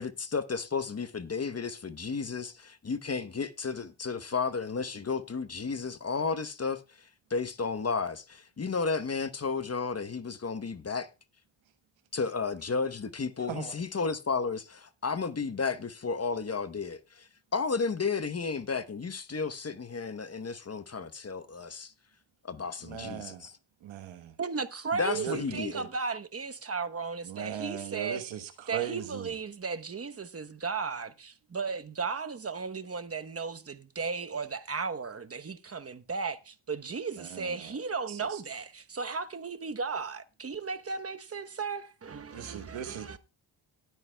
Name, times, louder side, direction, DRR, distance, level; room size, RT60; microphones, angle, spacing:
voice 1, 0.0-11.1 12.1-21.9 22.4-23.5 24.9-25.8, left 4 dB, 35° left, 0.9 m, -33 dB
voice 2, 22.8-23.5 23.8-24.3 25.1-25.9 27.2-29.4 37.2-37.7 38.1-38.4 42.3-43.2, right 10 dB, 90° right, 1.3 m, -39 dB
voice 3, 24.4-28.2 28.7-43.2, right 5 dB, 30° right, 1.0 m, -35 dB
18.5 x 9.2 x 2.3 m
cardioid pair, 60°, 46 cm